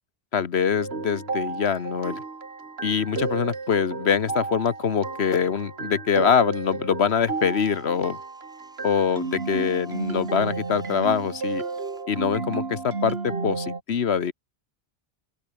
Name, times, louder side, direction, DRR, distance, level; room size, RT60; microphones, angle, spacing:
voice 1, 0.3-2.2 2.8-8.2 8.8-11.6 12.1-14.3, left 7 dB, 85° left, 1.4 m, -24 dB
sound 1, 0.8-13.8, right 4 dB, 75° right, 2.2 m, -32 dB
sound 2, 4.3-7.9, equal, 25° right, 8.2 m, -57 dB
sound 3, 7.0-12.1, equal, 5° right, 5.9 m, -59 dB
open air
omnidirectional pair, 1.1 m